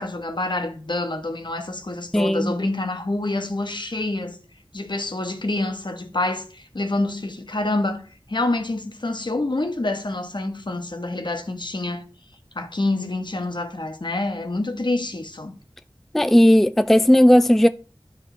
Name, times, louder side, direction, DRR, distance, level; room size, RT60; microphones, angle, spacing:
voice 1, 0.0-4.4 4.7-8.0 8.3-12.0 12.5-15.5, left 2 dB, 60° left, 1.2 m, -27 dB
voice 2, 2.1-2.5 16.1-17.7, equal, 5° left, 0.3 m, -15 dB
12.0 x 4.8 x 3.4 m
wide cardioid pair, 45°, 9 cm